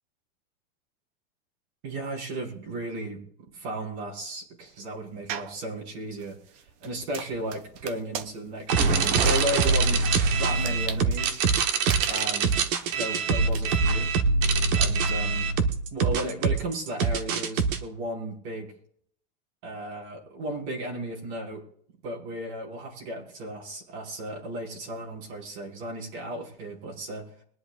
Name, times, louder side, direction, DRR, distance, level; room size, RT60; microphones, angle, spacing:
voice 1, 1.8-6.4 6.8-10.1 10.3-11.4 12.1-14.1 14.8-15.5 15.9-18.7 19.6-21.6 22.0-27.3, right 1 dB, 80° right, -1 dB, 5.1 m, -35 dB
sound 1, 5.3-5.6 6.2-13.6, right 8 dB, 25° right, 0.4 m, -38 dB
sound 2, 8.7-17.8, right 4 dB, 55° right, 1.3 m, -24 dB
22.5 x 10.5 x 2.4 m, 0.63 s
supercardioid pair, 180°, 32 cm